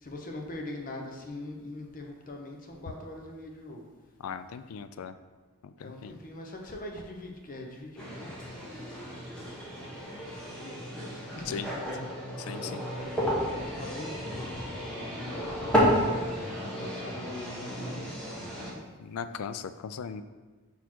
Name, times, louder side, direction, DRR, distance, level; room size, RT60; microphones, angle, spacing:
voice 1, 0.0-3.8 5.8-8.9 10.0-12.2 12.6-16.0 16.7-18.0 18.6-18.8 19.2-19.5, left 1 dB, 40° left, 1 dB, 0.8 m, -43 dB
voice 2, 4.2-5.1 5.6-6.2 11.5-11.7 12.4-12.8 19.0-20.2, left 7 dB, 70° left, 11 dB, 0.3 m, -38 dB
sound 1, 8.0-18.7, equal, 5° left, 1.3 m, -32 dB
5.5 x 4.2 x 4.5 m, 1.3 s
head